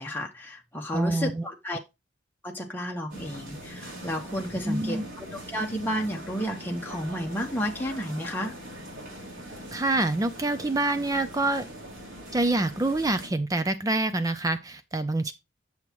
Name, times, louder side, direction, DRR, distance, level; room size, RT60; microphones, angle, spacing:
voice 1, 0.0-1.8 2.4-8.5, equal, 10° left, 1.1 m, -32 dB
voice 2, 0.9-1.4 4.7-5.1 9.7-11.7 12.3-15.3, right 2 dB, 20° right, 0.4 m, -26 dB
sound 1, 3.1-13.3, equal, 85° right, 3.8 m, -42 dB
7.8 x 7.1 x 3.0 m
head